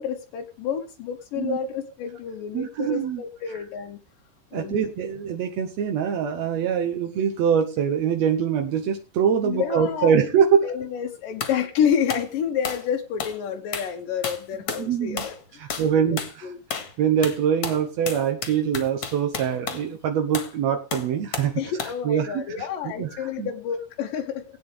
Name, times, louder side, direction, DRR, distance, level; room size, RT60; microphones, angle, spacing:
voice 1, 0.0-4.0 4.5-5.1 9.4-10.2 10.6-16.6 21.6-24.4, left 8 dB, 75° left, 3 dB, 2.6 m, -29 dB
voice 2, 2.5-3.2 3.5-3.6 4.5-10.7 14.8-15.2 15.5-21.6 22.0-23.5, right 8 dB, 70° right, 5 dB, 1.8 m, -24 dB
sound 1, 11.4-11.6 12.1-12.3 12.6-12.9 13.2-13.4 13.7-13.9 14.2-14.9 15.2-15.4 15.7-15.9 16.2-16.4 16.7-16.9 17.2-19.9 20.3-20.5 20.9-21.5 21.8-22.0, left 6 dB, 50° left, 2.3 m, -32 dB
19.0 x 9.1 x 3.4 m, 0.34 s
omnidirectional pair, 4.0 m